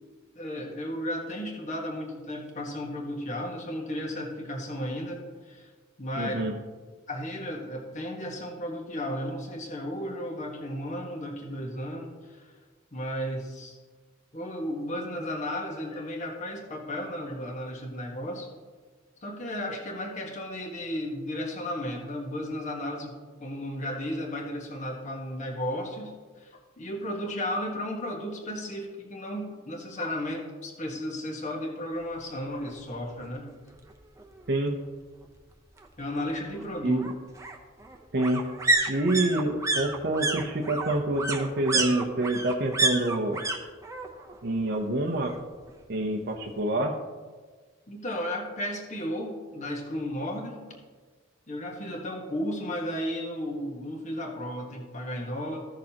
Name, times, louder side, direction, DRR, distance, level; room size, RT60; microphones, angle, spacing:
voice 1, 0.3-5.7 6.0-6.3 7.1-12.5 12.9-13.8 14.3-18.5 19.2-33.5 36.0-37.0 47.9-50.6 51.5-55.6, equal, 35° left, 0 dB, 1.4 m, -34 dB
voice 2, 6.2-6.6 34.5-34.7 36.8-37.1 38.1-38.4 38.9-43.4 44.4-45.3 45.9-46.9, right 1 dB, 55° right, 1 dB, 0.7 m, -27 dB
sound 1, 32.7-32.8 33.1-33.2 33.5-34.5 35.8-43.6 43.8-44.4 44.7-45.7 46.0-46.1, right 2 dB, 15° right, 0.7 m, -30 dB
15.0 x 6.4 x 2.9 m, 1.4 s
head